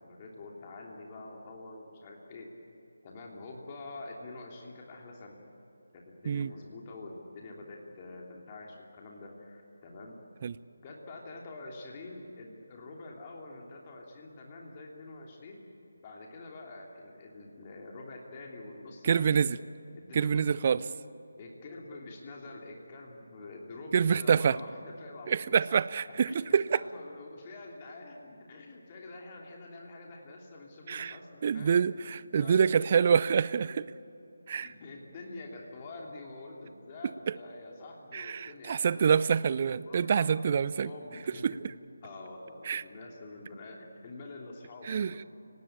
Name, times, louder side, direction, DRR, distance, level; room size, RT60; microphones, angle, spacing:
voice 1, 0.0-2.5 3.0-5.4 5.9-10.2 10.8-15.6 16.0-19.5 19.9-20.8 21.4-25.8 26.1-31.8 32.1-32.6 34.6-39.2 39.8-41.6 42.0-45.2, left 2 dB, 25° left, -1 dB, 3.0 m, -46 dB
voice 2, 19.0-19.6 20.1-20.8 23.9-24.6 25.3-26.8 30.9-31.2 31.4-33.9 34.5-34.7 37.3-37.4 38.1-40.9 41.4-41.5 42.7-42.8 44.8-45.2, right 7 dB, 35° right, 18 dB, 0.5 m, -26 dB
30.0 x 18.0 x 8.8 m, 2.9 s
figure-of-eight pair, 155°, 0 cm